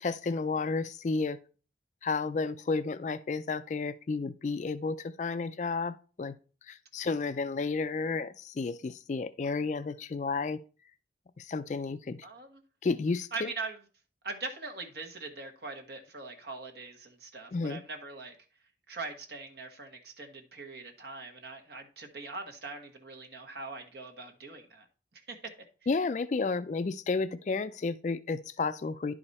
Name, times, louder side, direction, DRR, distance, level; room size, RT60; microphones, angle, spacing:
voice 1, 0.0-1.4 2.0-6.3 6.7-10.6 11.4-12.3 12.8-13.5 17.5-17.8 25.9-29.1, left 4 dB, 40° left, 0.3 m, -32 dB
voice 2, 12.2-12.6 13.3-13.8 14.2-18.4 18.9-24.8 25.3-25.5, right 3 dB, 60° right, 1.4 m, -41 dB
10.5 x 5.0 x 4.1 m
head